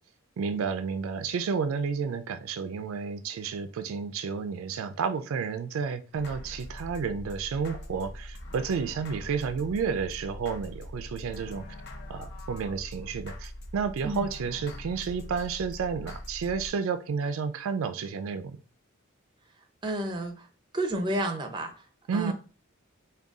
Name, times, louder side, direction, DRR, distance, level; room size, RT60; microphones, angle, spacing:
voice 1, 0.4-11.7 12.1-18.6 22.1-22.3, right 6 dB, 70° right, 0.3 m, -31 dB
sound 1, 6.1-16.7, left 1 dB, 55° left, 0.6 m, -42 dB
voice 2, 19.8-20.4 20.7-21.7 22.1-22.3, right 1 dB, 20° right, 0.5 m, -30 dB
3.7 x 2.3 x 3.5 m
head